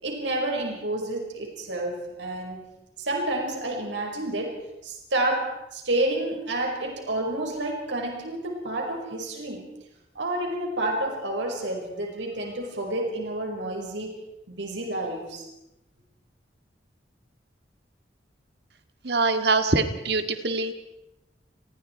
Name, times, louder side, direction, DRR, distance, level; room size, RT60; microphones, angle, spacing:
voice 1, 0.0-2.6 3.0-4.6 4.8-9.6 10.2-14.2 14.5-15.4, right 1 dB, 90° right, 1 dB, 5.4 m, -29 dB
voice 2, 19.0-20.7, right 3 dB, 65° right, 8 dB, 1.9 m, -24 dB
30.0 x 20.5 x 4.7 m, 0.91 s
head